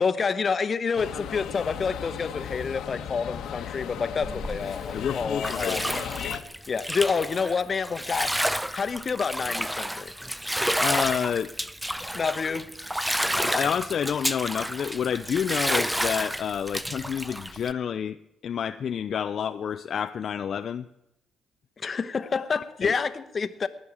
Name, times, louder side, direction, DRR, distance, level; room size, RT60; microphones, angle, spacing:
voice 1, 0.0-5.8 6.7-8.4 8.7-10.1 12.1-12.6 21.8-23.7, left 5 dB, 40° left, 13 dB, 0.9 m, -28 dB
sound 1, 1.0-6.4, left 9 dB, 80° left, 1.1 m, -36 dB
Bathtub (filling or washing), 4.2-17.7, equal, 5° right, 0.6 m, -30 dB
voice 2, 4.9-5.8 6.3-6.4 10.8-11.5 13.4-18.2 18.4-20.9 22.8-23.0, left 8 dB, 60° left, 10 dB, 0.4 m, -29 dB
19.0 x 6.4 x 8.6 m, 0.86 s
cardioid pair, 90°, 0 cm